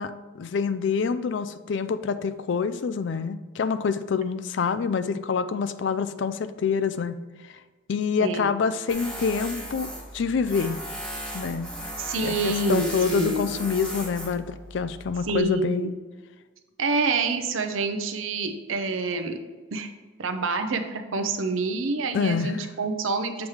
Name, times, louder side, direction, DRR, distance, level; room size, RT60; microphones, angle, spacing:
voice 1, 0.0-7.2 7.9-9.9 10.1-10.8 11.3-11.7 12.2-15.9 22.1-22.5, left 5 dB, 65° left, 12 dB, 0.4 m, -26 dB
voice 2, 8.2-8.5 12.0-13.5 15.3-15.9 16.8-19.4 19.7-19.9 20.2-23.5, right 3 dB, 80° right, 7 dB, 0.6 m, -27 dB
Tools, 8.9-15.4, equal, 5° left, 1.1 m, -36 dB
7.2 x 3.2 x 4.7 m, 1.3 s
head